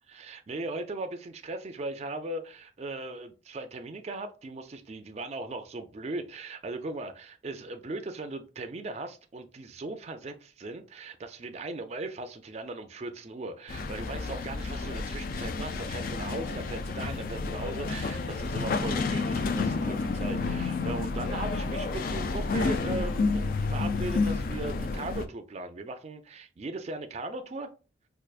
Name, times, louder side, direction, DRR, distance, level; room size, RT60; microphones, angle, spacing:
voice 1, 0.1-27.7, right 2 dB, 35° right, 0.4 m, -38 dB
sound 1, 13.7-25.3, left 3 dB, 50° left, 0.3 m, -30 dB
4.5 x 2.4 x 2.4 m
head